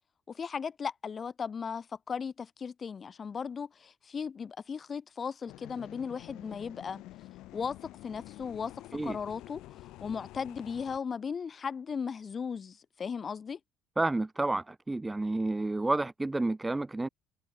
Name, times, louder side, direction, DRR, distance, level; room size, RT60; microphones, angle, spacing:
voice 1, 0.3-7.0 7.5-8.7 9.0-9.6 10.0-13.6, left 6 dB, 30° left, 3.1 m, -37 dB
sound 1, 5.5-11.0, left 17 dB, 70° left, 2.4 m, -49 dB
voice 2, 14.0-17.1, right 2 dB, 10° right, 0.4 m, -30 dB
cardioid pair, 140°, 0 cm